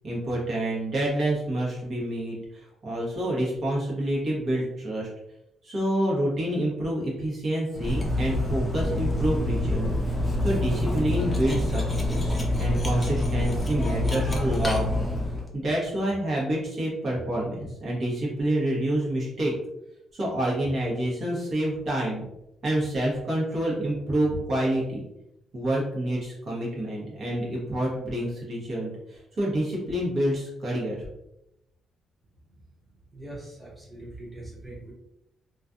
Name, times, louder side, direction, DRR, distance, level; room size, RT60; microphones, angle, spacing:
voice 1, 0.0-5.1 5.6-9.9 10.4-14.8 15.3-19.5 20.1-22.2 22.6-25.0 25.5-31.0, right 1 dB, 50° right, -4 dB, 1.0 m, -28 dB
Cutlery silverware, 7.7-15.5, left 1 dB, 20° left, 0.6 m, -26 dB
voice 2, 33.2-34.9, right 1 dB, 10° right, -5 dB, 1.0 m, -41 dB
2.4 x 2.3 x 2.5 m, 0.85 s
cardioid pair, 90°, 0 cm